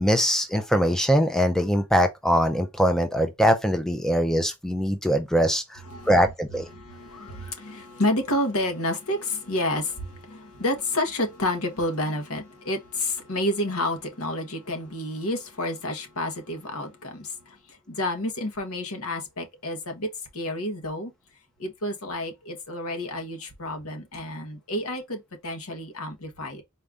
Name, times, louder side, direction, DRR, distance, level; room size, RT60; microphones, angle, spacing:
voice 1, 0.0-5.8 6.1-6.7, equal, ahead, 0.5 m, -22 dB
voice 2, 5.8-21.1 21.6-26.6, left 1 dB, 80° left, 1.2 m, -30 dB
4.3 x 2.5 x 3.4 m
head